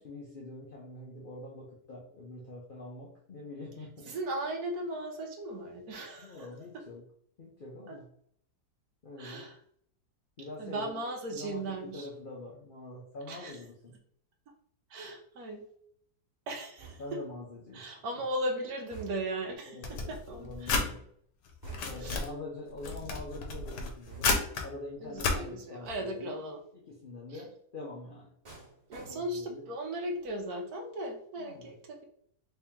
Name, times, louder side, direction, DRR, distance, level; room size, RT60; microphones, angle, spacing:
voice 1, 0.0-4.2 6.2-7.0 7.4-8.1 9.0-9.5 10.4-10.9 11.3-14.0 17.0-17.9 19.7-21.1 21.8-24.3 24.6-26.4 26.7-28.3 29.0-29.6 31.4-31.7, left 2 dB, 55° left, -4 dB, 0.5 m, -45 dB
voice 2, 4.1-6.8 7.9-8.0 9.2-9.6 10.6-12.1 13.3-13.6 14.9-15.6 16.5-17.2 17.7-20.9 22.0-22.2 25.0-26.6 27.3-27.4 28.9-32.0, right 1 dB, 70° right, 3 dB, 1.2 m, -37 dB
sound 1, 16.8-17.4 18.9-19.5 21.6-22.2 24.1-24.6 25.8-26.3 28.4-29.6 29.9-30.3, right 5 dB, 30° right, 1.0 m, -50 dB
sound 2, 19.8-20.9 21.5-22.3 22.8-24.6 25.2-25.4, left 4 dB, 90° left, 1.3 m, -31 dB
3.4 x 2.9 x 3.5 m, 0.67 s
omnidirectional pair, 1.8 m